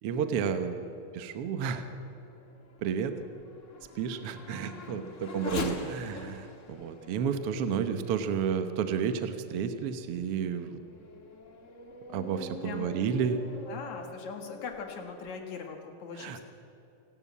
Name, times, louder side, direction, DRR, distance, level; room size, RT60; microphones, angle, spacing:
voice 1, 0.0-1.9 2.8-3.1 3.9-10.8 12.1-13.4 16.2-16.4, right 7 dB, 70° right, 8 dB, 1.4 m, -31 dB
Race car auto racing / Accelerating revving vroom, 1.3-9.2 9.8-9.9 10.5-15.3, left 3 dB, 45° left, 1.0 m, -44 dB
voice 2, 4.7-5.1 12.6-12.9 13.7-16.4, left 6 dB, 60° left, 3 dB, 2.8 m, -41 dB
28.0 x 12.5 x 8.5 m, 2.7 s
omnidirectional pair, 4.0 m